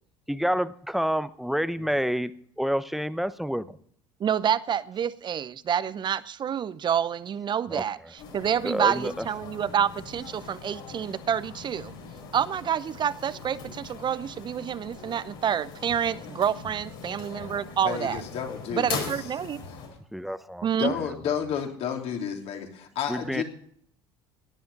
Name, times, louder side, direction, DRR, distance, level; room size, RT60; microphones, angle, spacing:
voice 1, 0.3-2.3 2.6-3.8 7.7-7.8 8.6-9.3 20.1-21.0 23.1-23.4, equal, ahead, 14 dB, 0.9 m, -28 dB
voice 2, 4.2-11.9 12.3-18.2 18.7-19.6 20.6-20.9, right 8 dB, 35° right, 17 dB, 0.8 m, -28 dB
sound 1, 8.2-19.9, left 5 dB, 70° left, 5.3 m, -41 dB
voice 3, 17.8-19.3 20.8-23.4, left 8 dB, 55° left, 3 dB, 3.1 m, -31 dB
17.5 x 10.5 x 5.4 m, 0.64 s
hypercardioid pair, 70°, 13 cm